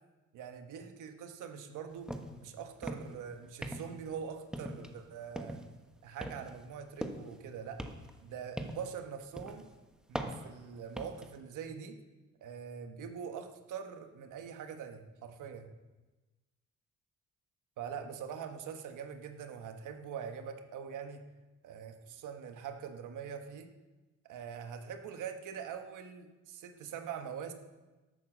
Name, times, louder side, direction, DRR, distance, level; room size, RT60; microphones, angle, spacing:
voice 1, 0.3-2.1 2.4-5.6 6.0-7.8 8.2-9.6 10.1-12.0 12.4-15.7 17.8-21.2 21.6-23.7 24.2-27.5, right 7 dB, 85° right, 6 dB, 1.5 m, -43 dB
sound 1, 2.1-2.4 2.7-3.2 3.6-4.1 4.5-5.0 5.4-5.7 6.2-7.4 7.8-9.0 9.4-9.7 10.1-11.3, equal, ahead, 1.3 m, -41 dB
13.0 x 9.2 x 6.2 m, 1.2 s
cardioid pair, 90°, 30 cm